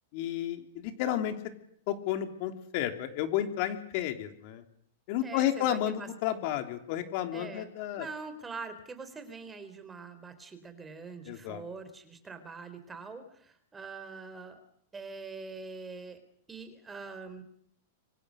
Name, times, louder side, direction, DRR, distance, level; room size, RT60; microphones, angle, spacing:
voice 1, 0.1-1.3 1.9-4.6 5.1-8.1 11.3-11.6, left 11 dB, 50° left, 7 dB, 3.3 m, -32 dB
voice 2, 5.2-6.1 7.3-7.7 8.0-14.6 14.9-16.2 16.5-17.4, right 4 dB, 15° right, 10 dB, 3.9 m, -43 dB
28.0 x 24.5 x 6.5 m, 0.66 s
hypercardioid pair, 135°, 0 cm